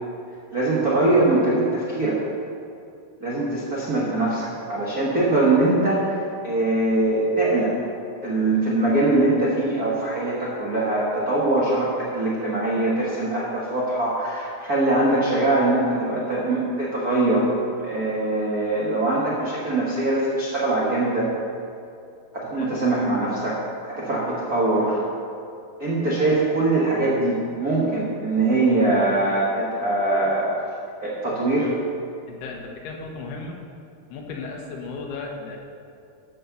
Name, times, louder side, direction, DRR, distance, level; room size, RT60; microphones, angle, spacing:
voice 1, 0.5-2.2 3.2-7.7 8.2-17.5 17.8-21.3 22.3-23.6 23.9-25.0 25.8-30.5 31.0-31.7, right 2 dB, 60° right, -7 dB, 0.9 m, -22 dB
voice 2, 32.3-33.6 34.1-35.6, left 4 dB, 80° left, 1 dB, 3.2 m, -35 dB
13.0 x 5.6 x 6.9 m, 2.5 s
omnidirectional pair, 4.6 m